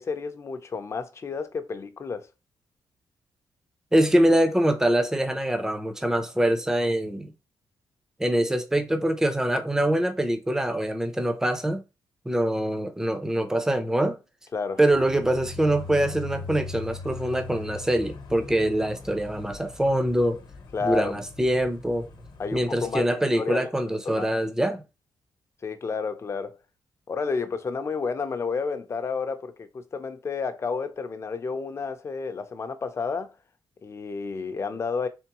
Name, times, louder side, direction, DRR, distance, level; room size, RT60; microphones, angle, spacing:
voice 1, 0.0-2.3 14.5-14.8 20.7-21.2 22.4-23.7 24.1-24.4 25.6-26.6 27.1-33.3 33.8-35.1, left 5 dB, 35° left, 0.6 m, -31 dB
voice 2, 3.9-7.3 8.2-11.8 12.3-14.2 14.8-20.4 20.8-22.1 22.5-24.8, right 1 dB, 5° right, 0.6 m, -24 dB
sound 1, 14.9-23.0, left 4 dB, 60° left, 1.0 m, -41 dB
3.7 x 3.5 x 2.9 m
cardioid pair, 125°, 8 cm